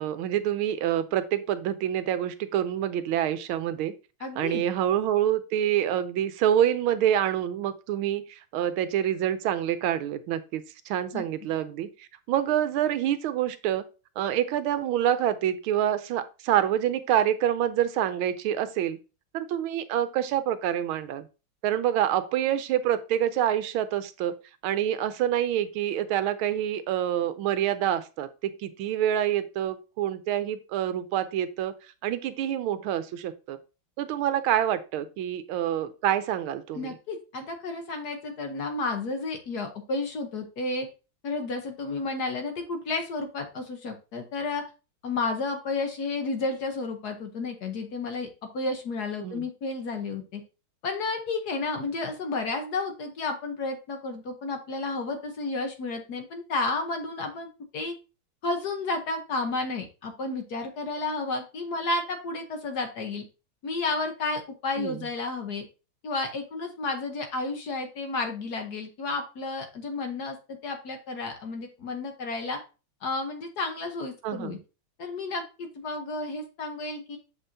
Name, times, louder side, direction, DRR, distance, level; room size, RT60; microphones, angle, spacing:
voice 1, 0.0-3.9 4.4-13.8 14.2-19.0 19.3-21.3 21.6-24.3 24.6-31.7 32.0-33.6 34.0-36.9 49.2-49.4 64.8-65.0 74.2-74.6, right 11 dB, 80° right, 12 dB, 1.4 m, -27 dB
voice 2, 4.2-4.6 11.1-11.2 36.7-40.9 41.2-44.6 45.0-48.3 48.5-50.4 50.8-57.9 58.4-63.2 63.6-65.6 66.0-72.6 73.0-74.6 75.0-77.2, left 3 dB, 55° left, 5 dB, 1.3 m, -32 dB
7.4 x 5.4 x 2.7 m, 0.31 s
omnidirectional pair, 2.4 m